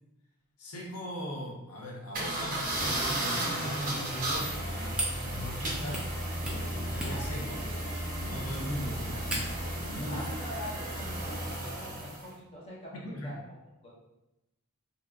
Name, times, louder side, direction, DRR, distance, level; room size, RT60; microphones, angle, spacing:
voice 1, 0.6-6.0 6.5-10.3 12.9-13.3, left 1 dB, 80° left, -2 dB, 0.6 m, -40 dB
sound 1, 2.1-12.3, right 1 dB, 40° right, 0.6 m, -34 dB
sound 2, 4.3-9.7, right 1 dB, 5° right, 0.3 m, -39 dB
voice 2, 9.9-13.5 13.8-13.9, left 1 dB, 25° left, -6 dB, 0.7 m, -44 dB
2.7 x 2.3 x 2.3 m, 0.94 s
head